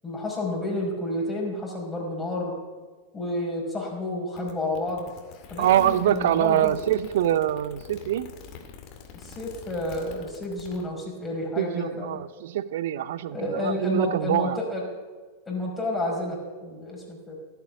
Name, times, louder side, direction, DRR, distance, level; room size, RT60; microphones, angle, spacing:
voice 1, 0.0-2.5 3.1-5.1 5.5-6.8 9.1-12.2 13.3-14.8 15.5-17.4, left 1 dB, 15° left, -2 dB, 4.9 m, -30 dB
sound 1, 4.4-10.8, left 6 dB, 40° left, 2.3 m, -45 dB
voice 2, 5.6-8.3 11.6-14.6, right 11 dB, 55° right, 17 dB, 0.6 m, -24 dB
16.5 x 8.1 x 8.7 m, 1.4 s
figure-of-eight pair, 90°, 0 cm